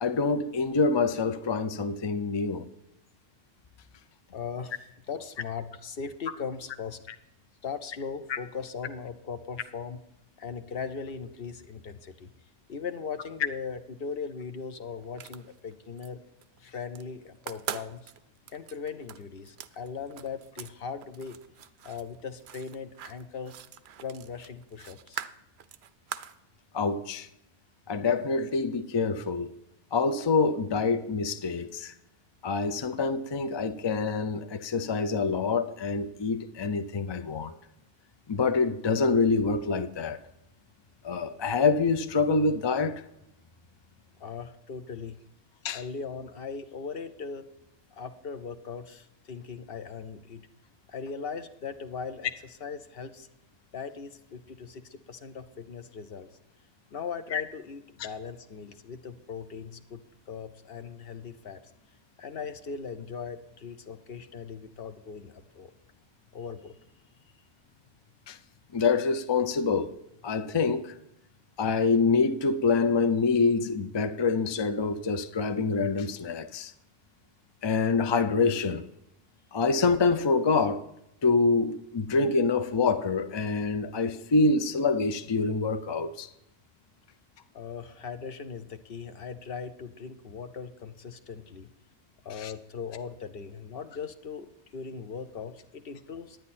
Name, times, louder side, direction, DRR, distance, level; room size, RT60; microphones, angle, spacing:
voice 1, 0.0-2.7 8.3-8.4 26.7-27.3 27.9-29.5 29.9-31.9 32.4-37.6 38.3-40.2 41.0-43.0 45.6-45.8 57.3-57.4 68.3-68.4 68.7-69.9 70.2-70.9 71.6-76.7 77.6-78.8 79.5-80.8 81.2-86.3 92.4-92.5, left 4 dB, 35° left, 0.4 m, -26 dB
voice 2, 4.3-7.0 7.6-10.0 10.4-12.3 12.7-16.2 16.6-18.1 18.5-21.4 21.8-23.5 24.0-25.2 44.2-45.2 45.7-47.5 47.9-50.5 50.9-53.3 53.7-56.3 56.9-61.6 62.2-65.7 66.3-66.7 87.5-91.7 92.2-96.4, left 5 dB, 60° left, 0.9 m, -39 dB
sound 1, 15.0-16.1 16.4-17.0 17.4-20.7 21.0-26.4, right 9 dB, 70° right, 0.8 m, -42 dB
10.5 x 9.7 x 4.2 m
omnidirectional pair, 1.2 m